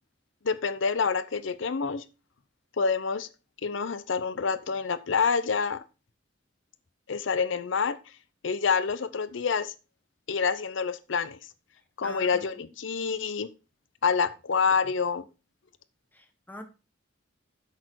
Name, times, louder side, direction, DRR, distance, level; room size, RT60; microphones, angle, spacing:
voice 1, 0.4-2.0 2.8-3.3 3.6-5.8 7.1-8.0 8.4-9.7 10.3-11.4 12.0-13.5 14.0-15.3, left 5 dB, 75° left, 0.6 m, -27 dB
voice 2, 12.0-12.5 16.2-16.6, left 1 dB, 10° left, 1.2 m, -43 dB
8.1 x 6.6 x 4.5 m
head